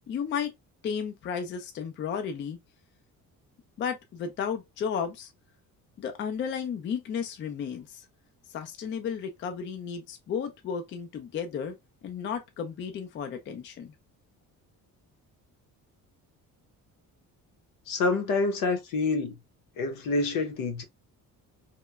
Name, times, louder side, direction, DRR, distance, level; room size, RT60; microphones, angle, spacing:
voice 1, 0.1-0.5 0.8-2.6 3.8-5.3 6.0-8.0 8.5-11.8 12.0-13.9, left 7 dB, 35° left, 0.4 m, -33 dB
voice 2, 17.9-19.3 19.8-20.8, left 3 dB, 80° left, 0.8 m, -27 dB
2.9 x 2.1 x 2.2 m
cardioid pair, 180°, 34 cm